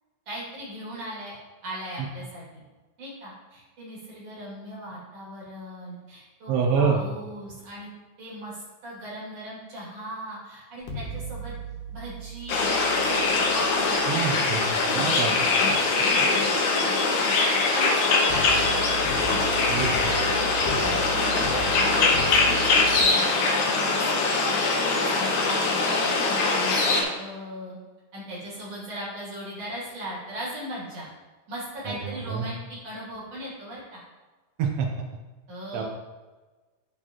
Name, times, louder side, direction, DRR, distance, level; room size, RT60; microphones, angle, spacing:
voice 1, 0.3-1.4 1.6-2.6 3.0-7.9 8.2-11.5 11.9-14.3 16.5-18.8 19.1-20.8 21.0-22.8 23.3-24.4 24.9-26.1 26.4-27.8 28.1-31.1 31.5-34.0 35.5-35.8, equal, 45° right, -7 dB, 3.2 m, -38 dB
voice 2, 6.5-7.0 14.0-14.6 14.9-15.3 19.7-20.1 32.0-32.4 34.6-34.9 35.7-35.8, right 6 dB, 90° right, 2 dB, 1.4 m, -26 dB
sound 1, 10.8-15.9 18.3-23.0, right 3 dB, 85° left, 2.6 m, -36 dB
sound 2, 12.5-27.0, left 3 dB, 70° left, 2.1 m, -22 dB
11.0 x 4.2 x 2.9 m, 1.3 s
omnidirectional pair, 3.9 m